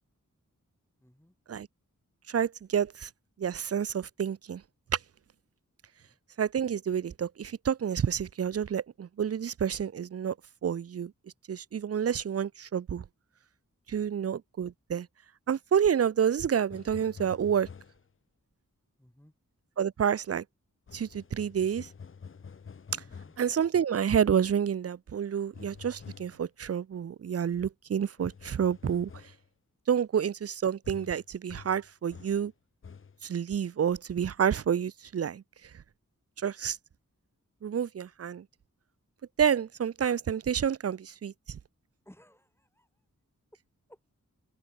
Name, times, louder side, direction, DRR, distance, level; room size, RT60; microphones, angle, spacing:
voice 1, 1.0-1.4 6.0-6.2 14.2-14.3 19.0-19.3 23.0-23.4 42.0-43.0 43.9-44.1, equal, 5° left, 7.7 m, -59 dB
voice 2, 2.3-3.1 3.4-4.6 6.4-10.3 10.6-11.1 11.5-13.0 13.9-15.1 15.5-17.7 19.8-20.4 20.9-21.9 23.4-29.1 29.9-32.5 33.2-35.4 36.4-36.8 37.6-38.4 39.4-41.6, right 8 dB, 50° right, 0.4 m, -29 dB
sound 1, 16.7-18.1 20.9-23.5 25.5-26.4 28.2-29.5 30.8-32.5 32.8-33.2, left 6 dB, 40° left, 0.5 m, -48 dB
open air
wide cardioid pair, 70°, 32 cm